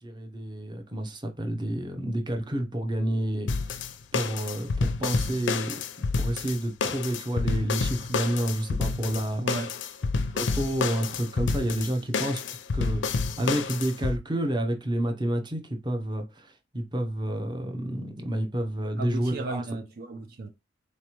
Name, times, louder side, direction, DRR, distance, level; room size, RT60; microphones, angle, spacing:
voice 1, 0.0-3.5 4.1-5.8 6.2-9.4 10.3-19.6, right 1 dB, 25° right, 0.8 m, -29 dB
sound 1, 3.5-14.2, left 4 dB, 80° left, 0.5 m, -29 dB
voice 2, 9.4-9.7 19.0-20.5, right 2 dB, 55° right, 0.5 m, -34 dB
4.1 x 3.2 x 2.9 m
head